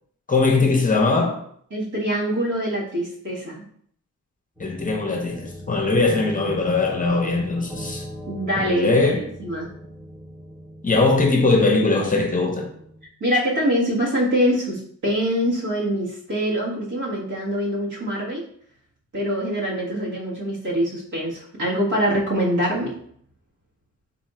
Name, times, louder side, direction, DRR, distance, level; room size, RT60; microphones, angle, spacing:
voice 1, 0.3-1.4 4.6-8.0 8.6-9.2 10.8-12.7, left 3 dB, 25° left, 0.6 m, -20 dB
voice 2, 1.7-3.6 8.3-9.7 13.2-18.4 19.1-23.0, equal, 85° right, 1.8 m, -24 dB
sound 1, 4.6-13.1, equal, ahead, 0.9 m, -40 dB
4.0 x 2.5 x 4.3 m
wide cardioid pair, 160°, 30 cm